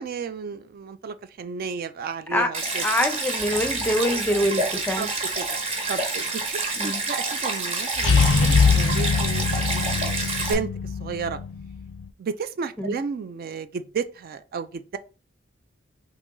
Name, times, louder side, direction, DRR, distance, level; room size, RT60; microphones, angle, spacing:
voice 1, 0.0-2.8 4.1-4.2 4.7-5.1 5.4-5.5 5.9-11.4 12.2-15.0, right 5 dB, 50° right, 0.3 m, -33 dB
Stream, 2.5-10.5, right 3 dB, 35° right, 1.0 m, -28 dB
voice 2, 2.8-5.1 6.8-7.0 12.8-13.0, equal, 10° left, 0.5 m, -24 dB
sound 1, 3.4-3.9 8.0-12.1, left 5 dB, 70° left, 0.4 m, -23 dB
3.9 x 3.0 x 3.7 m
head